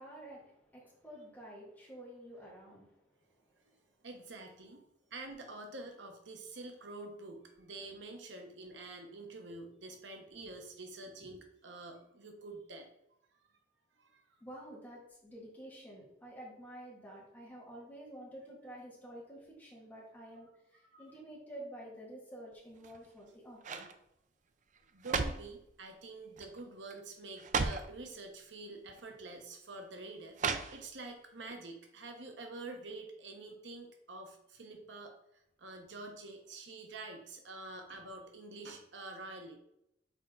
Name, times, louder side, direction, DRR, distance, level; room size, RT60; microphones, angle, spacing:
voice 1, 0.0-2.9 3.4-3.5 11.0-11.3 14.4-23.9, right 1 dB, 10° left, -5 dB, 2.2 m, -50 dB
voice 2, 4.0-4.8 5.1-12.9 14.0-14.2 20.9-21.1 24.9-35.1 35.6-39.6, right 2 dB, 85° right, 4 dB, 1.0 m, -47 dB
sound 1, 22.8-23.2 23.6-24.0 24.7-25.6 26.4-26.6 26.9-27.0 27.4-27.9 28.9-29.0 30.4-31.1 31.5-31.6, right 4 dB, 45° right, 0.5 m, -35 dB
6.5 x 4.4 x 3.8 m, 0.80 s
head